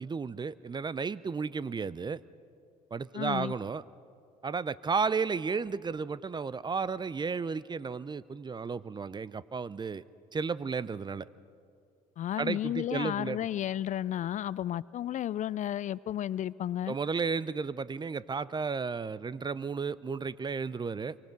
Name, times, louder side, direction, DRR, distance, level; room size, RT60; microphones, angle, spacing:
voice 1, 0.0-2.2 2.9-3.8 4.4-10.0 10.3-11.3 12.4-13.4 16.9-21.1, right 5 dB, 25° right, 19 dB, 0.6 m, -33 dB
voice 2, 3.1-3.5 12.2-17.0, left 11 dB, 45° left, 20 dB, 0.4 m, -33 dB
26.5 x 24.5 x 5.3 m, 2.4 s
hypercardioid pair, 65°, 18 cm